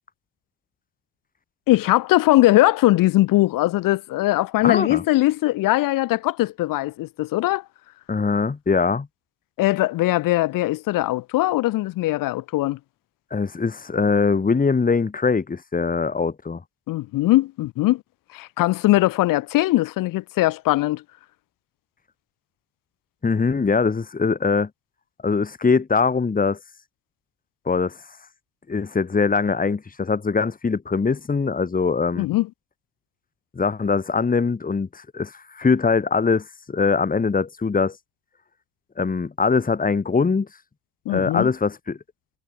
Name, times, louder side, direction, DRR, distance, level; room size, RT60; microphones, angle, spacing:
voice 1, 1.7-7.6 9.6-12.8 16.9-18.0 18.3-21.0 32.2-32.5 41.1-41.5, left 17 dB, 65° left, 3.7 m, -20 dB
voice 2, 4.6-5.0 8.1-9.1 13.3-16.6 23.2-24.7 25.2-26.6 27.6-28.0 28.7-32.3 33.5-38.0 39.0-40.5 41.1-42.0, left 4 dB, 25° left, 2.9 m, -22 dB
hypercardioid pair, 70°, 36 cm